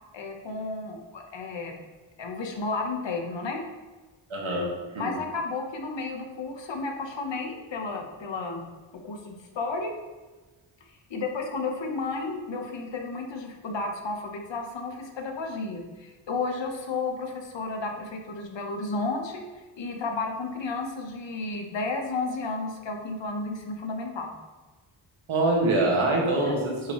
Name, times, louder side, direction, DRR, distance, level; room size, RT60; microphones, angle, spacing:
voice 1, 0.1-1.7 2.2-3.6 5.0-8.6 9.0-9.9 11.1-19.4 19.8-24.3 26.4-26.5, left 3 dB, 65° left, 3 dB, 1.2 m, -32 dB
voice 2, 4.3-5.1 25.3-26.9, right 2 dB, 75° right, -1 dB, 1.9 m, -25 dB
8.3 x 5.4 x 3.1 m, 1.3 s
wide cardioid pair, 140°, 48 cm